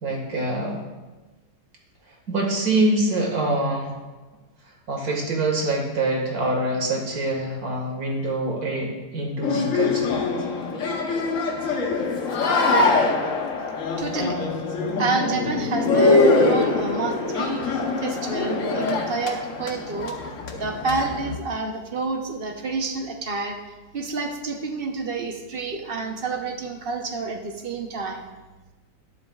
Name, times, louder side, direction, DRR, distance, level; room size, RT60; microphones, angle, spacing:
voice 1, 0.0-0.8 2.1-3.9 4.9-10.1, right 2 dB, 60° right, 0 dB, 2.2 m, -25 dB
sound 1, 9.4-21.4, left 3 dB, 55° left, 1.2 m, -23 dB
Mallet percussion, 13.3-15.5, left 13 dB, 70° left, 1.5 m, -42 dB
voice 2, 14.0-14.4 15.0-17.6 18.0-20.2 20.6-23.6 23.9-28.3, right 4 dB, 45° right, 3 dB, 0.8 m, -29 dB
12.0 x 11.0 x 2.4 m, 1.2 s
omnidirectional pair, 1.8 m